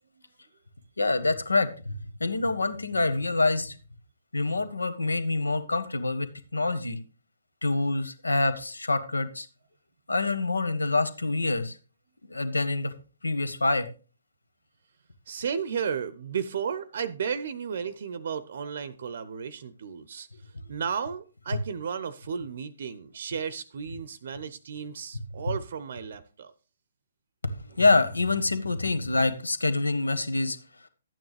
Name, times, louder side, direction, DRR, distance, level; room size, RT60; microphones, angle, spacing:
voice 1, 1.0-3.8 4.3-7.0 7.6-9.5 10.1-11.8 12.3-12.9 13.2-13.9 27.4-30.6, left 3 dB, 80° left, 1.3 m, -26 dB
voice 2, 15.3-20.3 20.7-26.5, right 7 dB, 55° right, 0.7 m, -33 dB
12.0 x 9.2 x 3.2 m
figure-of-eight pair, 130°, 0 cm